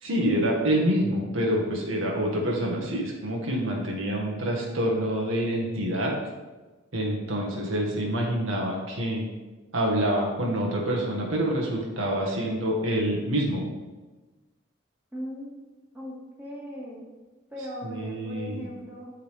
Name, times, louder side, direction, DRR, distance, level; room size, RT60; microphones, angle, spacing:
voice 1, 0.0-6.1 6.9-9.2 9.7-13.7 17.8-18.6, equal, 75° right, -2 dB, 1.7 m, -26 dB
voice 2, 15.1-17.0 17.5-19.1, equal, 10° right, -6 dB, 1.8 m, -39 dB
11.5 x 3.9 x 3.4 m, 1.2 s
head